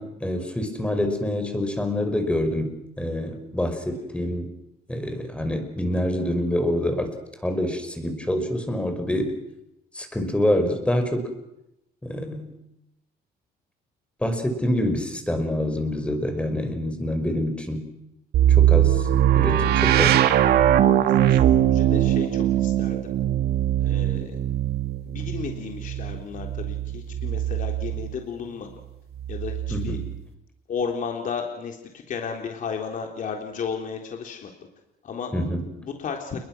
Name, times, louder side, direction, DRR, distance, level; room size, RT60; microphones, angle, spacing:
voice 1, 0.0-4.5 4.9-7.2 7.4-9.4 9.9-11.3 12.0-12.5 14.2-17.9 18.4-19.1 19.4-20.3 29.7-30.1 35.3-35.6, left 1 dB, 5° left, 6 dB, 5.4 m, -26 dB
sound 1, 18.3-28.2 29.2-30.2, right 11 dB, 70° right, 1.8 m, -21 dB
voice 2, 19.0-19.4 19.7-20.2 20.4-23.1 23.8-24.4 25.1-28.7 29.3-30.0 30.7-34.5 35.0-35.3 35.8-36.4, left 6 dB, 50° left, 3 dB, 3.7 m, -34 dB
29.5 x 22.0 x 6.2 m, 0.88 s
cardioid pair, 110°, 17 cm